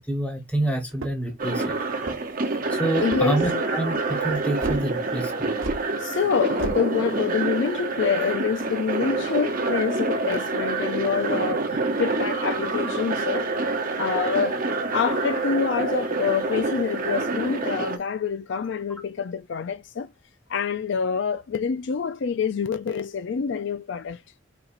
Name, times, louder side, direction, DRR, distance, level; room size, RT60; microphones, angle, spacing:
voice 1, 0.0-1.7 2.7-5.5, right 1 dB, 5° left, 1.1 m, -27 dB
sound 1, 0.9-1.4 1.9-2.4 3.0-3.5 4.6-4.8 5.6-5.8 6.6-6.8, right 3 dB, 65° right, 1.1 m, -32 dB
sound 2, 1.4-18.0, right 3 dB, 40° right, 0.8 m, -27 dB
voice 2, 3.0-3.7 5.8-13.5 14.0-14.6 14.9-20.1 20.5-24.2, left 6 dB, 55° left, 0.4 m, -26 dB
4.4 x 3.9 x 2.5 m
head